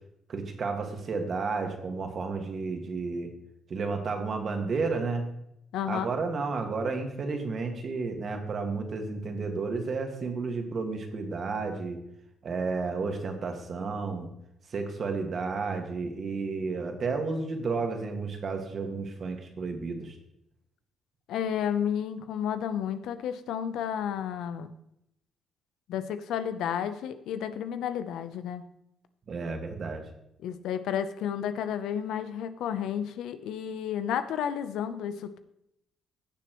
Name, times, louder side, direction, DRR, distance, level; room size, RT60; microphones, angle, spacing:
voice 1, 0.3-3.3 3.7-5.2 5.9-12.0 12.4-14.3 14.7-20.2 29.3-30.0, right 4 dB, 50° right, 4 dB, 1.8 m, -32 dB
voice 2, 5.7-6.1 21.3-24.7 25.9-28.6 30.4-35.4, left 9 dB, 85° left, 11 dB, 0.7 m, -31 dB
16.0 x 6.9 x 3.1 m, 0.79 s
cardioid pair, 90°, 0 cm